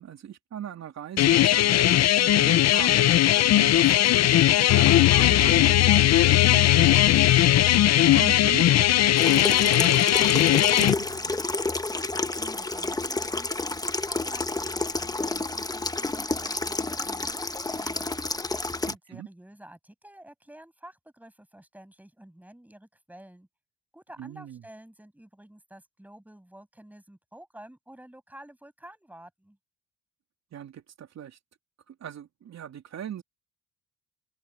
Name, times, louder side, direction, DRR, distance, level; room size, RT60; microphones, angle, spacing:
voice 1, 0.0-7.2 8.0-10.3 10.6-11.3 18.9-19.3 24.2-24.6 30.5-31.4 31.9-33.2, right 9 dB, 60° right, 3.3 m, -40 dB
sound 1, 1.2-10.9, left 12 dB, 60° left, 0.7 m, -19 dB
sound 2, 4.7-10.4, left 18 dB, 80° left, 1.1 m, -26 dB
Water tap faucet / Sink (filling or washing), 9.2-18.9, left 2 dB, 10° left, 1.1 m, -30 dB
voice 2, 12.1-13.8 14.0-18.1 18.8-23.5 23.9-29.6, right 1 dB, 5° right, 6.9 m, -50 dB
open air
cardioid pair, 90°, 30 cm